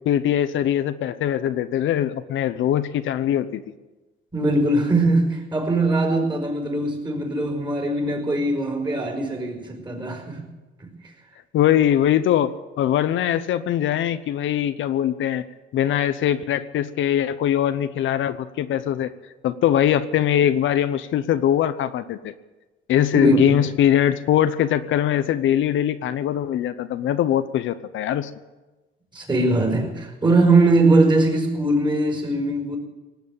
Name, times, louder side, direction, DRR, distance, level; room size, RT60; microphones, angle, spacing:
voice 1, 0.0-3.6 11.5-15.4 15.7-19.1 19.4-22.3 22.9-28.3, left 10 dB, 75° left, 12 dB, 0.8 m, -21 dB
voice 2, 4.3-10.4 10.8-10.9 23.1-23.7 29.1-32.8, right 2 dB, 20° right, 3 dB, 5.0 m, -21 dB
18.5 x 8.2 x 8.8 m, 1.1 s
cardioid pair, 90°, 20 cm